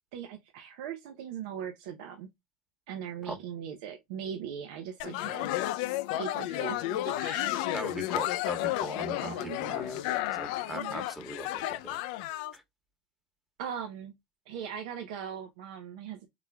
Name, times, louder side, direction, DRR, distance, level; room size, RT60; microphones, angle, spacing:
voice 1, 0.1-2.3 2.9-5.5 6.2-7.6 9.2-9.6 10.7-11.1 13.6-14.1 14.5-16.3, right 8 dB, 75° right, 0.6 m, -40 dB
sound 1, 5.0-12.5, left 14 dB, 70° left, 0.3 m, -32 dB
voice 2, 7.7-12.0 12.5-12.6, right 2 dB, 10° right, 1.2 m, -40 dB
3.8 x 3.0 x 2.2 m
hypercardioid pair, 80°, 4 cm